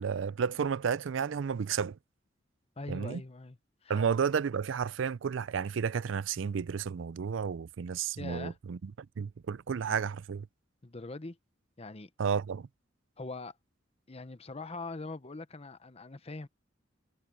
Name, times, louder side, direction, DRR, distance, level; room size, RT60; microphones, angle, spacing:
voice 1, 0.0-2.0 2.9-3.2 3.9-8.9 9.2-10.5 12.2-12.7, right 6 dB, 80° right, 0.4 m, -32 dB
voice 2, 2.8-4.0 8.2-8.6 10.8-11.4 11.8-12.1 13.2-13.5 14.1-16.5, left 3 dB, 35° left, 0.9 m, -42 dB
head